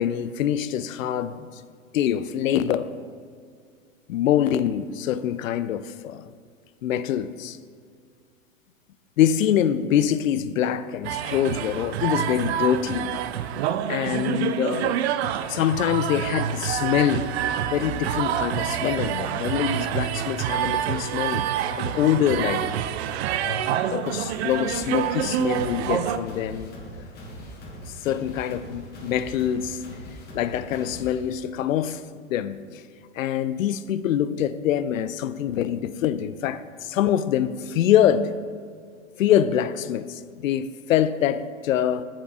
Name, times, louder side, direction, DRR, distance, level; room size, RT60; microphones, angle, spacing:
voice 1, 0.0-1.6 1.9-2.9 4.1-6.2 6.8-7.6 9.2-13.1 13.9-15.0 15.5-21.5 21.8-22.7 23.4-27.0 27.9-29.8 30.3-32.8 33.1-38.3 39.2-42.0, left 10 dB, 75° left, 0.5 m, -25 dB
sound 1, 11.0-26.2, right 10 dB, 55° right, 0.5 m, -27 dB
sound 2, 24.0-31.2, equal, 25° left, 1.5 m, -41 dB
7.3 x 7.0 x 3.7 m
hypercardioid pair, 110°, 40 cm